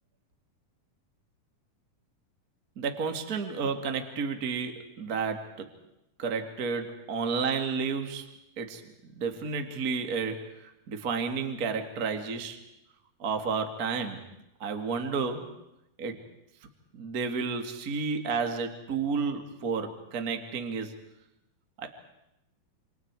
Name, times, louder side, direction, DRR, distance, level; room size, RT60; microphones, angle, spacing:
voice 1, 2.7-5.7 6.2-8.3 8.6-12.6 13.2-14.2 14.6-15.5 16.0-16.2 16.9-20.9 21.8-21.9, right 5 dB, 35° right, 5 dB, 1.5 m, -31 dB
28.0 x 27.0 x 4.7 m, 0.88 s
omnidirectional pair, 4.6 m